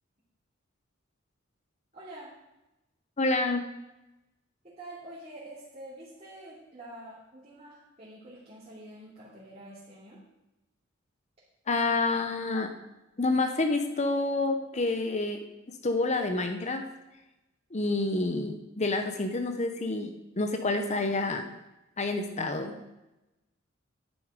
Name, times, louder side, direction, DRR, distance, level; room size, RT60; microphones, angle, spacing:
voice 1, 1.9-2.3 4.6-10.2, right 1 dB, 35° right, -9 dB, 2.9 m, -47 dB
voice 2, 3.2-3.6 11.7-12.7 13.2-15.4 15.8-16.8 17.7-21.5 22.0-22.8, left 2 dB, 35° left, 6 dB, 0.8 m, -28 dB
10.5 x 9.3 x 5.0 m, 0.96 s
head